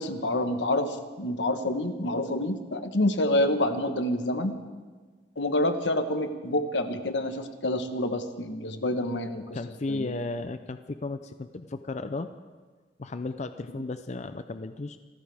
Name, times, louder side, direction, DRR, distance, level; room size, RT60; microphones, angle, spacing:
voice 1, 0.0-4.6 5.4-9.6 9.9-10.1, left 1 dB, 85° left, 8 dB, 1.2 m, -27 dB
voice 2, 9.5-12.3 13.0-15.0, left 2 dB, 40° left, 10 dB, 0.5 m, -34 dB
26.5 x 14.0 x 3.5 m, 1.4 s
head